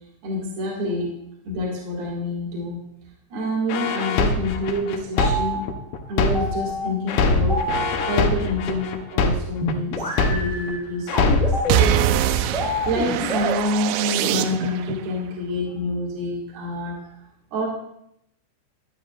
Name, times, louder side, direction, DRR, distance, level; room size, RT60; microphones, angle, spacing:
voice 1, 0.2-1.1 1.4-2.8 3.3-5.7 6.1-7.7 8.0-9.9 10.3-12.5 12.9-17.2 17.5-17.7, left 1 dB, 60° right, -4 dB, 3.2 m, -27 dB
sound 1, 3.7-6.7 7.1-10.7 11.1-11.7, left 3 dB, 90° left, 2.2 m, -22 dB
sound 2, 5.2-8.7 9.6-13.5, left 1 dB, 5° left, 1.5 m, -28 dB
sound 3, 11.7-14.9, right 11 dB, 85° right, 3.0 m, -23 dB
14.0 x 10.0 x 2.4 m, 0.76 s
omnidirectional pair, 5.7 m